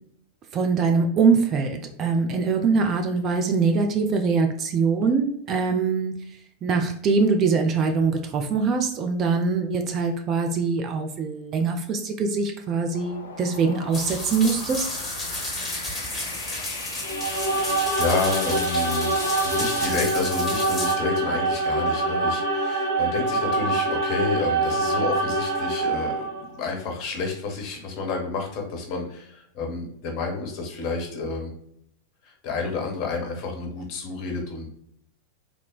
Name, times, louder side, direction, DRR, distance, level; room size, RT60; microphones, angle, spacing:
voice 1, 0.5-6.1 6.6-14.9, right 4 dB, 30° right, 5 dB, 0.3 m, -23 dB
sound 1, 12.9-19.9, left 3 dB, 70° left, 0.3 m, -38 dB
sound 2, 13.9-20.9, left 1 dB, 10° left, 0.9 m, -32 dB
sound 3, 17.0-26.5, right 2 dB, 70° right, 0.8 m, -25 dB
voice 2, 17.1-31.5 32.2-34.7, left 4 dB, 40° left, 2 dB, 0.7 m, -30 dB
3.1 x 2.1 x 2.2 m, 0.69 s
figure-of-eight pair, 90°, 0 cm